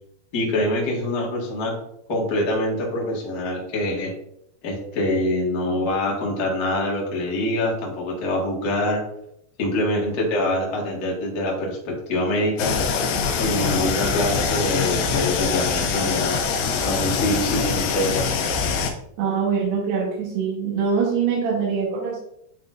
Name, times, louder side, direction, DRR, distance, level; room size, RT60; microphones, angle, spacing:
voice 1, 0.3-1.7 2.1-4.1 4.6-9.0 9.6-12.7 13.2-16.4 16.8-18.3, left 1 dB, 65° left, -3 dB, 0.9 m, -25 dB
sound 1, 12.6-18.9, left 5 dB, 90° left, 2.8 m, -23 dB
voice 2, 19.2-22.2, right 6 dB, 85° right, -3 dB, 3.2 m, -23 dB
10.0 x 3.9 x 2.4 m, 0.75 s
omnidirectional pair, 4.6 m